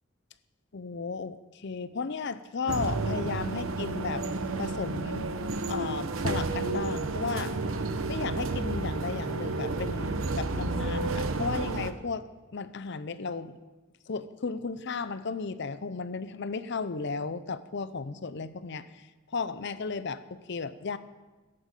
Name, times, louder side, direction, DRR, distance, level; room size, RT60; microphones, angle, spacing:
voice 1, 0.7-4.2 4.6-5.3 5.7-7.5 8.1-12.2 12.5-13.6 14.1-19.0 19.3-21.0, left 4 dB, 60° left, 14 dB, 0.6 m, -34 dB
sound 1, 2.7-11.9, right 3 dB, 85° right, 0.9 m, -31 dB
14.0 x 10.5 x 5.4 m, 1.2 s
head